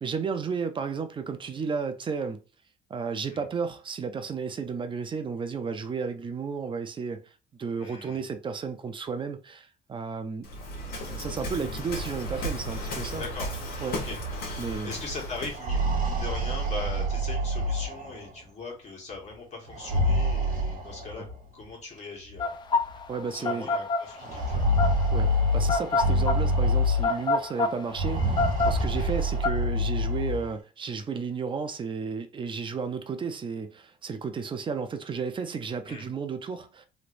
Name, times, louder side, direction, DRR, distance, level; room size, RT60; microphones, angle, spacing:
voice 1, 0.0-2.4 2.9-10.5 11.0-13.2 13.8-14.0 14.6-14.9 21.1-21.2 23.1-23.7 25.1-36.9, right 5 dB, 30° right, 0.5 m, -33 dB
voice 2, 7.8-8.2 13.2-13.5 13.9-14.2 14.8-21.3 21.5-22.5 23.3-24.9 28.9-29.2 35.8-36.0, left 3 dB, 45° left, 1.6 m, -40 dB
Waves surf, 10.4-15.7, equal, 60° left, 1.4 m, -34 dB
sound 1, 15.5-18.3 19.7-21.4 22.4-22.5 22.8-22.9 24.2-27.3 27.9-30.5, equal, 50° right, 1.1 m, -26 dB
sound 2, 22.4-29.5, left 3 dB, 25° left, 0.4 m, -27 dB
3.2 x 3.0 x 2.6 m
cardioid pair, 110°, 17 cm